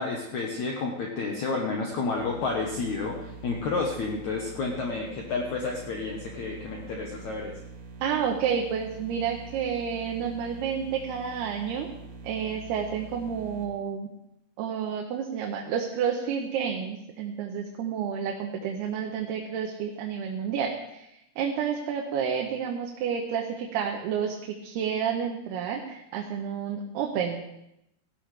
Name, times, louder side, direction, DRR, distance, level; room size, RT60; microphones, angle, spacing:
voice 1, 0.0-7.5, left 3 dB, 60° left, 0 dB, 2.1 m, -30 dB
sound 1, 2.1-13.6, right 3 dB, 60° right, 3.6 m, -45 dB
voice 2, 8.0-11.9 12.2-14.1 14.6-21.1 21.4-27.4, right 7 dB, 80° right, 1 dB, 3.0 m, -30 dB
18.0 x 13.5 x 3.4 m, 0.82 s
omnidirectional pair, 4.6 m